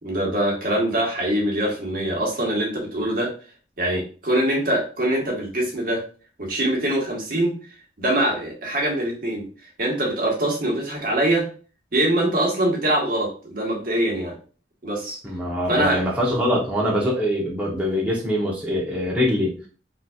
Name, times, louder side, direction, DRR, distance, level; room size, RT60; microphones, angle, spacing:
voice 1, 0.0-3.3 3.8-6.0 6.4-7.5 8.0-9.5 9.8-11.5 11.9-14.3 14.8-15.2 15.7-16.0, right 1 dB, 55° right, -2 dB, 1.2 m, -23 dB
voice 2, 15.2-19.5, equal, 10° right, -5 dB, 0.7 m, -23 dB
3.8 x 2.6 x 2.3 m, 0.38 s
head